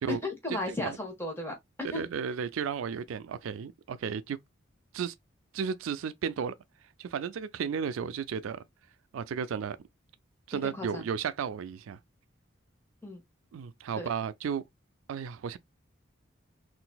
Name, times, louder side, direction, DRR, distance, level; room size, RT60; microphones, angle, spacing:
voice 1, 0.1-1.5 1.9-2.0 10.5-11.0 13.0-13.2 14.0-14.1, left 2 dB, 10° left, 1.2 m, -35 dB
voice 2, 1.8-4.4 4.9-5.1 5.5-6.6 7.0-8.6 9.1-9.8 10.5-12.0 13.5-14.6 15.1-15.6, right 7 dB, 90° right, 0.4 m, -33 dB
3.9 x 2.6 x 2.2 m
head